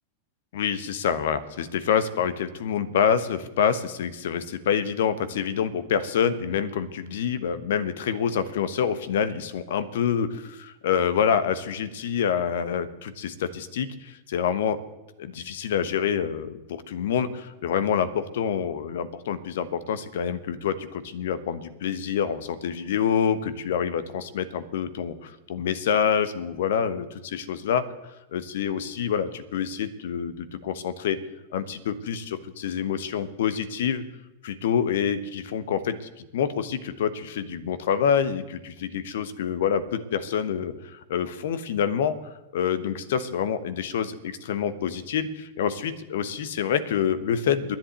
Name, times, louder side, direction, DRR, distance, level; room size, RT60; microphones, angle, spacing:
voice 1, 0.5-14.8 15.2-27.8 28.3-31.2 31.5-34.0 34.4-47.8, left 8 dB, 60° left, 13 dB, 1.1 m, -27 dB
11.0 x 10.5 x 9.1 m, 0.96 s
figure-of-eight pair, 90°, 0 cm